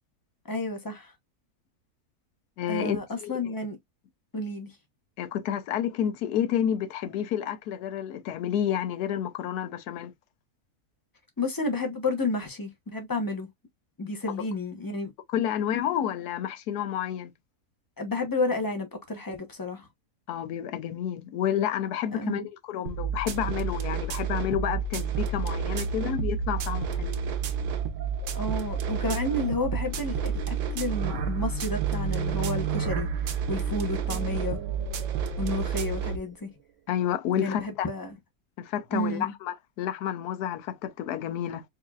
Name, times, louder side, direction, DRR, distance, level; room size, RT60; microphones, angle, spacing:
voice 1, 0.5-1.1 2.7-3.8 4.3-4.7 11.4-13.5 14.0-15.1 18.0-19.9 22.1-22.4 28.3-34.6 35.4-36.5 37.4-38.2 38.9-39.3, left 2 dB, 20° left, 0.6 m, -31 dB
voice 2, 2.6-3.5 5.2-10.1 14.4-14.5 15.3-17.3 20.3-27.2 36.9-37.9 38.6-41.6, left 10 dB, 90° left, 1.2 m, -30 dB
sound 1, 22.9-36.2, right 6 dB, 90° right, 1.3 m, -30 dB
sound 2, 27.4-36.5, right 12 dB, 60° right, 1.0 m, -39 dB
4.6 x 2.8 x 2.3 m
omnidirectional pair, 1.6 m